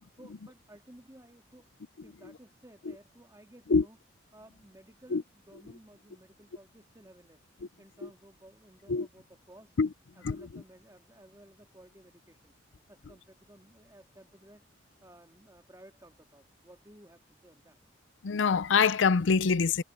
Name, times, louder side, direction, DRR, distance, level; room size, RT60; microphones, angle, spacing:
voice 1, 0.1-1.7 2.0-4.0 4.3-7.4 7.8-9.8 10.2-12.5 12.9-14.6 15.0-17.8, right 1 dB, 15° right, 2.6 m, -56 dB
voice 2, 18.2-19.8, left 5 dB, 80° left, 0.5 m, -24 dB
head